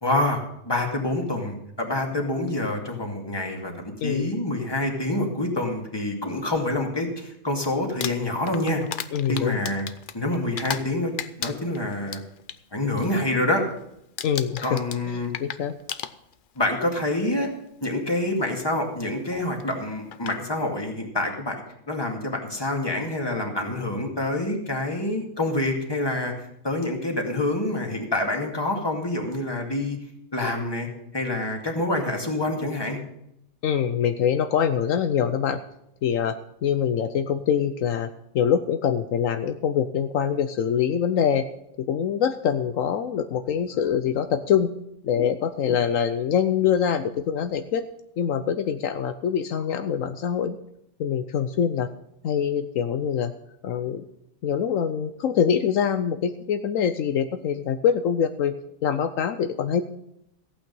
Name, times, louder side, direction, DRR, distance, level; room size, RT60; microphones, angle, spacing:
voice 1, 0.0-3.7 4.0-8.8 9.3-9.9 10.1-11.1 11.4-12.2 12.7-13.6 14.6-15.3 16.6-17.5 17.8-21.6 21.9-26.3 26.6-30.0 30.3-30.9 31.1-33.0, left 1 dB, 20° left, 1 dB, 2.2 m, -26 dB
voice 2, 4.0-4.3 9.1-9.6 14.2-14.8 15.1-15.7 33.6-35.6 36.0-38.1 38.3-41.4 41.8-44.7 45.0-47.8 48.2-50.6 51.0-51.9 52.2-53.3 53.6-54.0 54.4-58.6 58.8-59.8, left 8 dB, 75° left, 9 dB, 1.1 m, -24 dB
Crumpling crinkling, 7.8-10.9 11.2-12.6 13.0-13.3 13.5-13.9 14.2-16.6 17.5-17.6 19.6-19.7 20.1-20.4, left 8 dB, 50° left, 0.6 m, -34 dB
15.0 x 8.9 x 5.4 m, 0.80 s
omnidirectional pair, 1.4 m